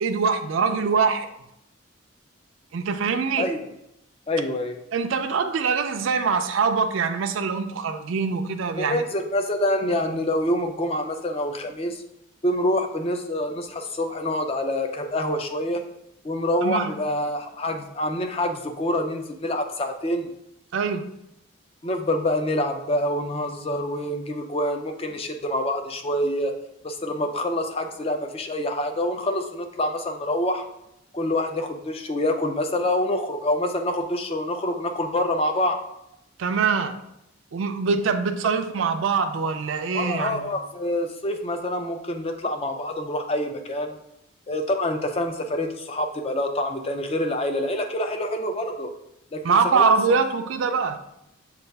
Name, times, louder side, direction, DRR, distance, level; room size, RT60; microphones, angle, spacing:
voice 1, 0.0-1.3 2.7-3.5 4.9-9.0 16.6-16.9 20.7-21.0 36.4-37.0 37.5-40.5 49.4-51.0, right 5 dB, 65° right, 7 dB, 0.4 m, -23 dB
voice 2, 4.3-4.8 8.8-12.0 12.4-15.8 16.2-20.3 21.8-26.5 26.8-30.6 31.1-35.8 39.9-44.0 44.5-48.9 49.3-49.8, left 1 dB, 25° left, 5 dB, 0.4 m, -26 dB
6.5 x 2.3 x 3.4 m, 0.81 s
head